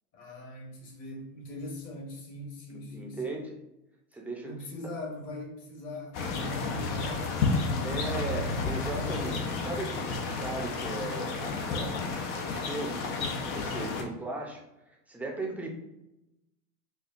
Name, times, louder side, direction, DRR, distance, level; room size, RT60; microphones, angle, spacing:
voice 1, 0.1-3.4 4.4-9.3, left 1 dB, 45° left, 0 dB, 1.4 m, -42 dB
voice 2, 2.7-3.6 4.1-4.5 7.8-14.6 15.1-15.7, right 2 dB, 5° right, 0 dB, 0.5 m, -38 dB
sound 1, 6.1-14.0, left 4 dB, 65° left, 0.8 m, -31 dB
4.5 x 2.4 x 2.5 m, 0.90 s
supercardioid pair, 105°, 45 cm